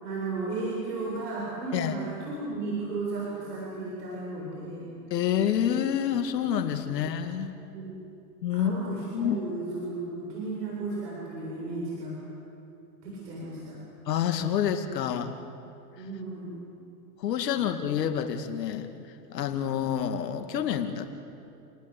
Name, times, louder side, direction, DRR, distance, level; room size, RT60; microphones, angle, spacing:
voice 1, 0.0-4.9 6.9-7.0 7.7-8.0 8.5-12.1 13.0-13.8 16.0-16.8, right 3 dB, 80° right, -4 dB, 7.8 m, -34 dB
voice 2, 5.1-7.5 8.4-8.7 9.1-9.4 14.1-15.3 17.2-18.9 19.3-21.1, left 9 dB, 75° left, 7 dB, 2.3 m, -28 dB
29.5 x 19.0 x 8.4 m, 2.7 s
hypercardioid pair, 120°, 49 cm